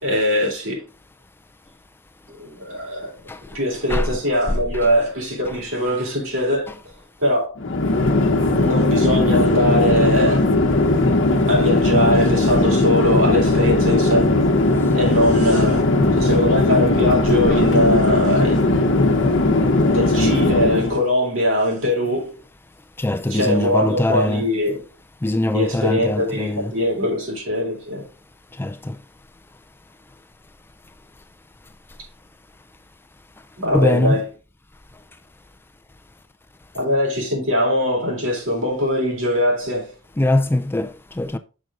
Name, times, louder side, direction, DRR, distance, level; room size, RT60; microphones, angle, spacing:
voice 1, 0.0-0.8 2.4-3.1 3.5-6.7 7.2-7.6 8.5-10.5 11.4-14.4 14.8-15.9 16.2-18.9 19.8-22.3 23.3-24.8 25.5-28.1 33.6-34.2 36.7-39.9, left 1 dB, 85° right, 3.5 m, -21 dB
Chatter / Fixed-wing aircraft airplane, 7.6-21.0, left 2 dB, 65° left, 0.9 m, -18 dB
voice 2, 23.0-24.5 25.2-26.7 28.6-29.0 33.7-34.2 40.2-41.4, left 1 dB, 10° left, 0.4 m, -22 dB
6.5 x 6.1 x 3.7 m
head